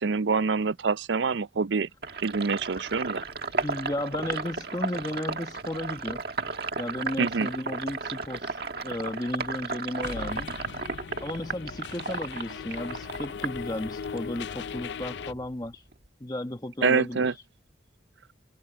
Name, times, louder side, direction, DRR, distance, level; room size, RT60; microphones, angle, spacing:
voice 1, 0.0-1.9 2.2-3.2 7.2-7.5 16.8-17.3, right 4 dB, 80° right, 0.6 m, -26 dB
Sink (filling or washing), 2.0-14.3 14.6-16.1, right 4 dB, 55° right, 1.8 m, -34 dB
voice 2, 3.6-6.2 6.8-10.5 11.2-15.8 16.2-17.2, left 1 dB, 20° left, 1.1 m, -34 dB
sound 1, 10.0-15.3, left 6 dB, 70° left, 0.4 m, -38 dB
head